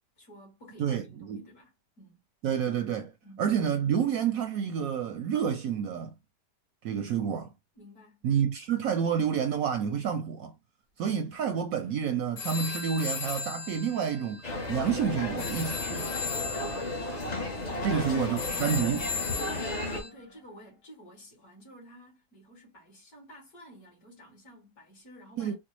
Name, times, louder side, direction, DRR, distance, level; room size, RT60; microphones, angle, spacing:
voice 1, 0.2-2.2 3.2-3.4 7.8-8.2 17.7-17.9 19.5-25.6, equal, 60° left, 2.3 m, -51 dB
voice 2, 0.8-1.4 2.4-3.1 3.4-6.1 6.8-7.5 8.2-10.5 11.0-14.4 14.7-16.1 17.8-19.1 25.4-25.5, right 7 dB, 70° right, 0.9 m, -29 dB
sound 1, 12.4-20.1, left 5 dB, 75° left, 1.3 m, -37 dB
sound 2, 14.4-20.0, left 2 dB, 40° left, 0.6 m, -34 dB
sound 3, 17.8-20.7, left 2 dB, 15° left, 1.0 m, -47 dB
4.4 x 2.1 x 3.0 m
omnidirectional pair, 1.8 m